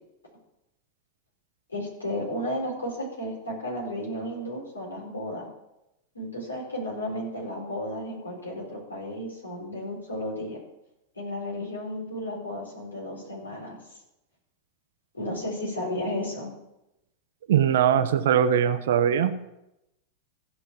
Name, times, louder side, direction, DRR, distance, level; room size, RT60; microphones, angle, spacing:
voice 1, 1.7-5.5 6.1-10.6 11.1-13.8 15.1-16.5, left 1 dB, 75° left, -2 dB, 4.3 m, -33 dB
voice 2, 17.5-19.4, right 9 dB, 60° right, 11 dB, 0.8 m, -21 dB
15.5 x 5.6 x 6.0 m, 0.88 s
figure-of-eight pair, 90°, 0 cm